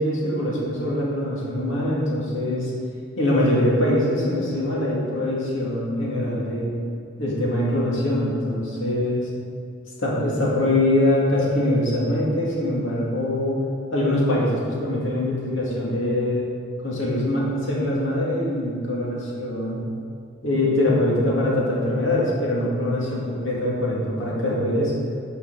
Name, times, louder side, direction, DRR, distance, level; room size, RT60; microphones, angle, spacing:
voice 1, 0.0-2.7 3.2-6.7 7.2-9.3 10.0-13.6 13.9-16.5 16.8-19.8 20.4-24.9, left 1 dB, 85° left, -5 dB, 2.3 m, -23 dB
11.5 x 5.9 x 4.0 m, 2.3 s
head